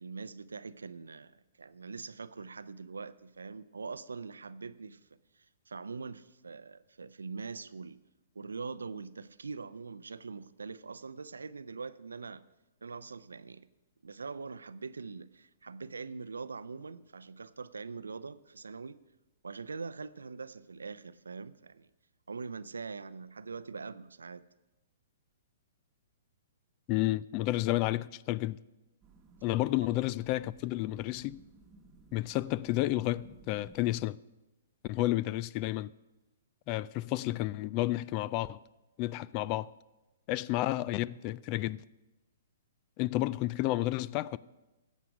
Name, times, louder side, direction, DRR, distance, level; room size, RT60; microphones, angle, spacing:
voice 1, 0.0-5.0 5.4-8.0 8.4-12.4 12.8-13.7 14.0-19.0 19.4-21.9 22.3-24.4, right 4 dB, 90° right, 0.5 m, -43 dB
voice 2, 26.9-28.6 29.4-31.4 32.1-34.2 34.8-35.9 36.7-38.6 39.0-39.7 40.3-41.8 43.0-44.4, left 16 dB, 35° left, 0.3 m, -31 dB
sound 1, 29.0-34.0, right 3 dB, 20° right, 1.4 m, -58 dB
14.5 x 8.3 x 5.0 m
hypercardioid pair, 130°, 0 cm